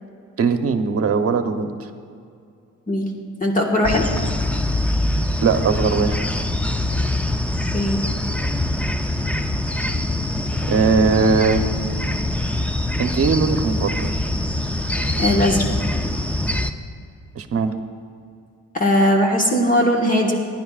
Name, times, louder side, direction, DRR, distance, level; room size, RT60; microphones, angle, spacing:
voice 1, 0.4-1.9 5.4-6.2 10.7-11.6 13.0-14.2 17.3-17.7, right 5 dB, 50° right, 7 dB, 1.0 m, -20 dB
voice 2, 3.4-4.0 7.7-8.0 15.2-15.6 18.7-20.4, left 1 dB, 25° left, 0 dB, 1.6 m, -18 dB
sound 1, 3.8-16.7, left 1 dB, 5° left, 0.6 m, -23 dB
21.5 x 10.5 x 2.5 m, 2.4 s
cardioid pair, 90°, 30 cm